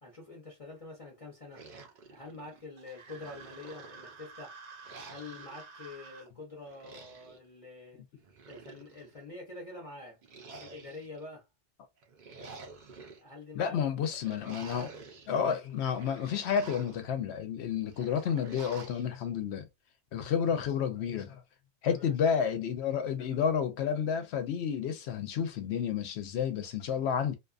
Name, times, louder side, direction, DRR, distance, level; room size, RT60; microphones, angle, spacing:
voice 1, 0.0-1.7 2.1-4.6 5.0-8.0 8.5-10.2 10.6-11.5 13.2-13.8 21.8-22.1, left 3 dB, 35° left, 0.7 m, -46 dB
sound 1, 1.5-2.7 3.1-4.3 4.8-5.6 6.6-7.4 8.2-9.2 10.2-11.2 12.0-13.2 14.1-15.3 15.7-17.0 17.9-19.1, right 4 dB, 50° right, 0.6 m, -49 dB
sound 2, 2.8-6.3, right 5 dB, 80° right, 1.1 m, -50 dB
voice 2, 13.5-14.9 15.3-19.7 20.1-21.4 21.8-27.3, left 7 dB, 70° left, 0.9 m, -30 dB
2.5 x 2.3 x 2.4 m
omnidirectional pair, 1.2 m